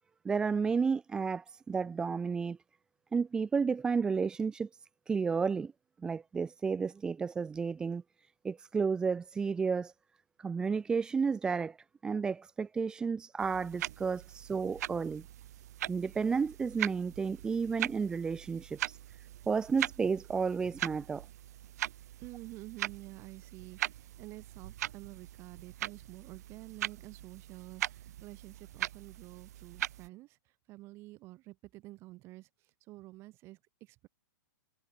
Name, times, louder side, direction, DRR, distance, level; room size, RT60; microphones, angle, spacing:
voice 1, 0.2-2.6 3.1-4.7 5.1-5.7 6.0-8.0 8.4-9.9 10.4-11.8 12.0-15.2 15.9-19.0 19.5-21.2, right 5 dB, 5° right, 0.8 m, -32 dB
sound 1, 13.4-30.1, right 13 dB, 50° right, 1.5 m, -41 dB
voice 2, 22.2-34.1, right 19 dB, 20° right, 6.2 m, -50 dB
hypercardioid pair, 175°, 11 cm